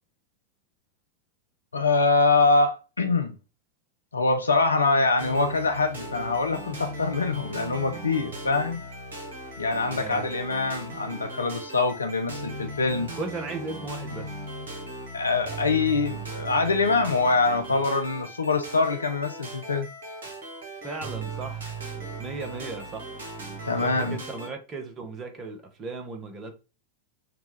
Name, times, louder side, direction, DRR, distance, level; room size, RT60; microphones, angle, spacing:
voice 1, 1.7-3.3 4.1-8.8 9.6-13.1 15.1-19.9 23.7-24.2, left 3 dB, 75° left, 0.6 m, -24 dB
sound 1, 5.2-24.5, right 2 dB, 65° right, 1.2 m, -38 dB
voice 2, 9.9-10.3 13.2-14.4 20.8-23.1 23.8-26.5, right 3 dB, 30° right, 1.0 m, -36 dB
5.8 x 2.4 x 3.2 m
figure-of-eight pair, 90°, 0 cm